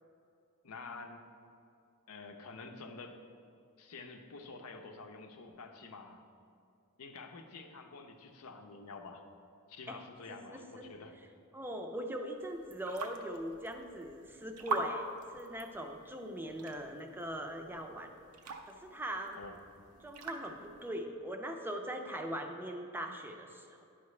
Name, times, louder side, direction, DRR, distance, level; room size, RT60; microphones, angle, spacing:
voice 1, 0.6-1.2 2.1-3.2 3.8-6.2 7.0-9.2 9.7-11.1 19.4-19.5, left 3 dB, 75° left, 5 dB, 0.7 m, -48 dB
voice 2, 10.3-10.9 11.5-18.1 18.6-19.4 20.0-23.8, equal, 10° right, 4 dB, 0.5 m, -41 dB
sound 1, 12.4-20.9, right 3 dB, 90° right, 0.6 m, -44 dB
9.7 x 5.7 x 3.2 m, 2.5 s
head